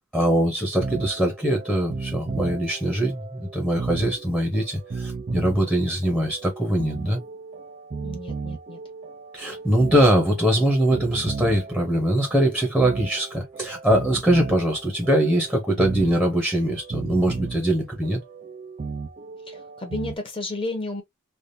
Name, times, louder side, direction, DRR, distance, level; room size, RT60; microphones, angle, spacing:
voice 1, 0.1-7.2 9.3-18.2, right 1 dB, 5° left, 0.9 m, -22 dB
sound 1, 0.7-20.2, right 4 dB, 30° right, 0.4 m, -35 dB
voice 2, 8.0-8.8 19.5-21.0, left 2 dB, 25° left, 1.1 m, -32 dB
3.4 x 2.4 x 2.6 m
head